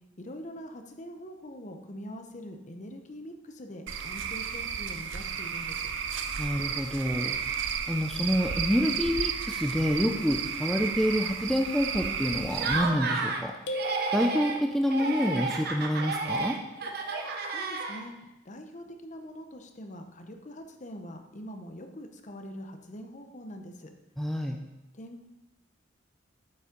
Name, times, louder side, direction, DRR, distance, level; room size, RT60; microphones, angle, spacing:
voice 1, 0.2-5.9 17.4-18.1 18.4-23.9 24.9-25.2, equal, 40° left, 5 dB, 0.8 m, -43 dB
Cricket / Frog, 3.9-12.8, right 7 dB, 80° right, 0.6 m, -33 dB
voice 2, 6.4-7.4 7.9-13.5 14.1-16.6 24.2-24.6, equal, ahead, 2 dB, 0.4 m, -27 dB
Laughter, 12.5-13.4 13.7-14.6 14.9-18.2, right 3 dB, 55° right, 0.9 m, -31 dB
sound 1, 13.7-15.2, right 1 dB, 75° left, 0.8 m, -38 dB
8.1 x 5.5 x 5.1 m, 0.99 s
head